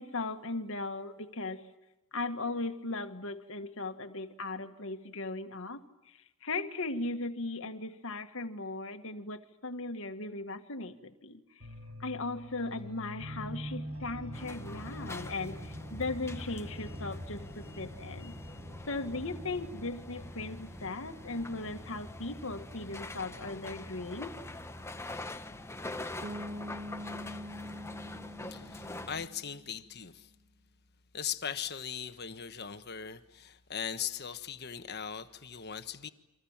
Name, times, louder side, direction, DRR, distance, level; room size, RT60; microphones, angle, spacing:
voice 1, 0.0-1.6 2.1-11.7 12.0-18.3 18.9-24.4, left 2 dB, 65° left, 1.7 m, -38 dB
sound 1, 11.6-27.9, equal, 80° right, 6.3 m, -46 dB
sound 2, 14.3-29.3, left 2 dB, 10° left, 0.9 m, -45 dB
Bass guitar, 26.2-29.9, left 1 dB, 50° right, 1.6 m, -44 dB
voice 2, 28.4-30.3 31.1-36.1, left 8 dB, 45° left, 1.4 m, -39 dB
29.5 x 25.0 x 7.4 m
head